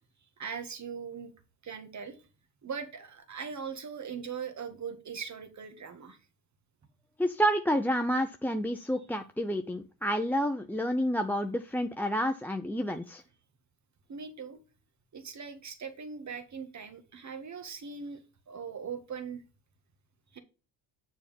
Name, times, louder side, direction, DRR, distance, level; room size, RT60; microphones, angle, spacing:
voice 1, 0.4-1.3 1.6-2.2 2.6-6.2 14.1-14.6 15.1-18.2 18.5-19.4 20.3-20.4, right 6 dB, 35° right, 9 dB, 1.7 m, -40 dB
voice 2, 7.2-13.2, equal, 5° left, 7 dB, 0.5 m, -29 dB
7.0 x 4.2 x 5.1 m, 0.31 s
supercardioid pair, 80°, 47 cm